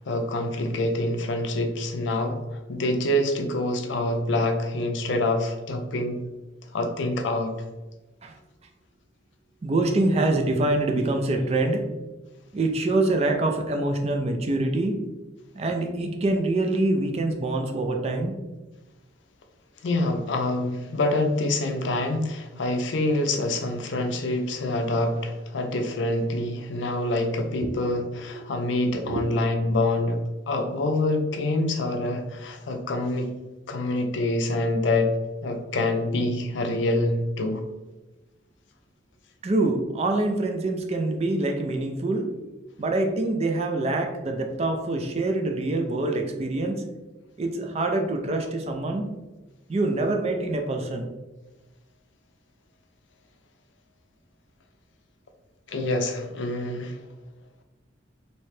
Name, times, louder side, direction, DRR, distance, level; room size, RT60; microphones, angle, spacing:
voice 1, 0.1-6.2 6.7-7.5 19.8-30.2 30.5-33.3 33.7-35.1 35.4-37.6 55.7-57.0, left 2 dB, 65° left, 5 dB, 0.5 m, -26 dB
voice 2, 9.6-11.9 12.5-15.0 15.5-18.3 28.3-28.4 29.1-29.2 39.4-42.3 42.8-46.8 47.4-49.1 49.7-51.1, right 2 dB, 35° right, 4 dB, 0.4 m, -25 dB
3.2 x 2.8 x 3.1 m, 1.1 s
head